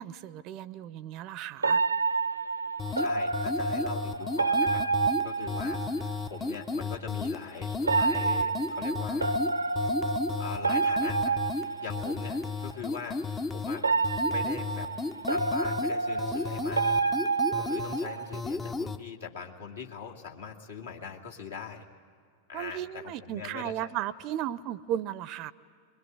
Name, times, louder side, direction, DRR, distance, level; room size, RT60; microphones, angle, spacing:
voice 1, 0.0-1.8 22.5-25.5, right 11 dB, 40° right, 19 dB, 0.6 m, -35 dB
sound 1, 1.6-6.2 7.8-12.4 13.8-18.4, right 4 dB, 80° right, 0.6 m, -29 dB
sound 2, 2.8-19.0, left 4 dB, 15° left, 0.6 m, -34 dB
voice 2, 3.0-4.9 5.2-9.4 10.4-13.2 13.5-14.9 15.3-16.9 17.5-21.8 22.5-23.9, left 6 dB, 65° left, 0 dB, 2.2 m, -42 dB
24.0 x 22.5 x 9.5 m, 2.2 s
figure-of-eight pair, 90°, 0 cm